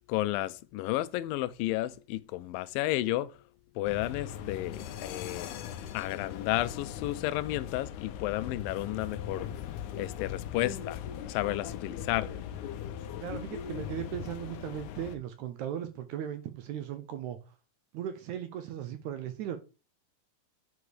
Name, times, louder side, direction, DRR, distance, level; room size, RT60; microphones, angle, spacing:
voice 1, 0.1-3.3 3.8-5.6 5.9-9.5 10.0-11.0 11.3-12.3, left 16 dB, 90° left, 2.3 m, -32 dB
sound 1, 3.8-15.2, left 9 dB, 75° left, 2.1 m, -39 dB
voice 2, 13.2-17.4 17.9-19.6, right 10 dB, 75° right, 1.8 m, -37 dB
8.1 x 4.8 x 4.9 m
omnidirectional pair, 3.9 m